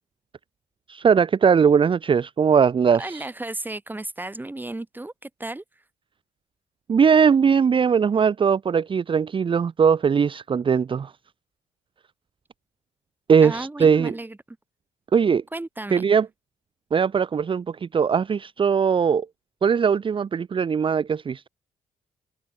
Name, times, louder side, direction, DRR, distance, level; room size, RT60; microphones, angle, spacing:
voice 1, 0.9-3.3 6.9-11.1 13.3-14.1 15.1-15.4 15.9-16.3 16.9-19.3 19.6-21.5, right 6 dB, 40° right, 0.9 m, -20 dB
voice 2, 3.0-5.6 13.4-14.4 15.5-16.1, right 2 dB, 15° right, 2.9 m, -34 dB
supercardioid pair, 65°, 14 cm